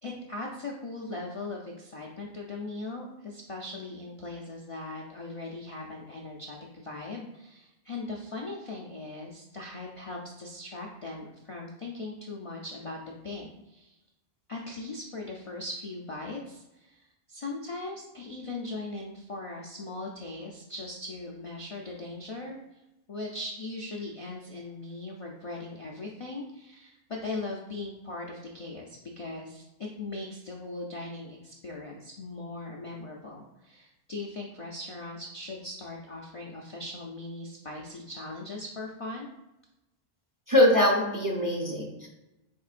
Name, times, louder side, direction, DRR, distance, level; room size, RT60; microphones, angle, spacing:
voice 1, 0.0-13.0 13.2-14.0 14.5-22.6 23.1-39.3, left 2 dB, 45° left, -2 dB, 0.4 m, -39 dB
voice 2, 40.5-42.1, left 1 dB, 20° right, -2 dB, 0.6 m, -23 dB
4.5 x 4.4 x 2.4 m, 0.95 s
omnidirectional pair, 1.1 m